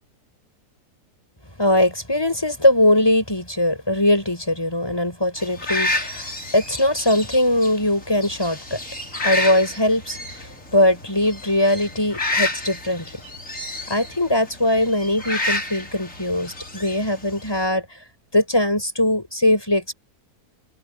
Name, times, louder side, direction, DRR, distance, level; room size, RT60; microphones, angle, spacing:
voice 1, 1.6-8.8 9.2-13.2 13.9-18.0 18.3-19.9, left 1 dB, 15° left, 7.9 m, -21 dB
sound 1, 5.4-17.6, left 2 dB, 50° left, 5.8 m, -30 dB
omnidirectional pair, 1.7 m